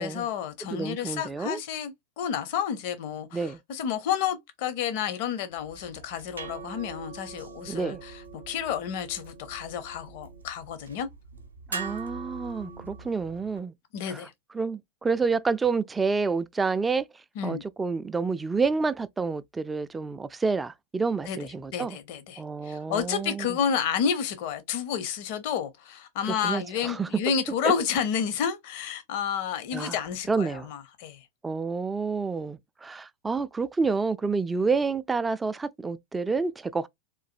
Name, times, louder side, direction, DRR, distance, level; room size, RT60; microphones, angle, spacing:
voice 1, 0.0-11.1 13.9-14.3 17.4-17.6 21.3-21.4 21.7-31.3, left 8 dB, 50° left, 0.7 m, -30 dB
voice 2, 0.7-1.6 3.3-3.6 7.7-8.0 11.7-13.7 14.1-14.2 14.5-17.1 17.4-22.0 22.4-23.5 26.4-27.1 27.6-27.7 29.7-30.0 30.3-30.7 31.4-36.9, right 4 dB, 10° right, 0.3 m, -29 dB
sound 1, 5.6-13.6, right 4 dB, 75° right, 0.6 m, -42 dB
3.8 x 2.6 x 2.5 m
figure-of-eight pair, 90°, 0 cm